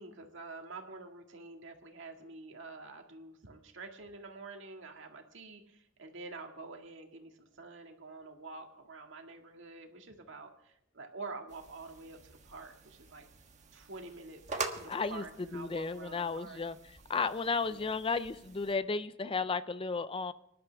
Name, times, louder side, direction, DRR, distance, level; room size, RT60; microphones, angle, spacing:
voice 1, 0.0-13.3 13.7-16.6 17.7-17.9, right 3 dB, 70° right, 3 dB, 2.0 m, -48 dB
sound 1, 11.5-18.7, right 4 dB, 40° right, 1.4 m, -45 dB
voice 2, 14.9-15.2 15.5-16.8 17.1-20.3, left 4 dB, 30° left, 13 dB, 0.5 m, -33 dB
25.0 x 11.5 x 3.5 m, 0.77 s
head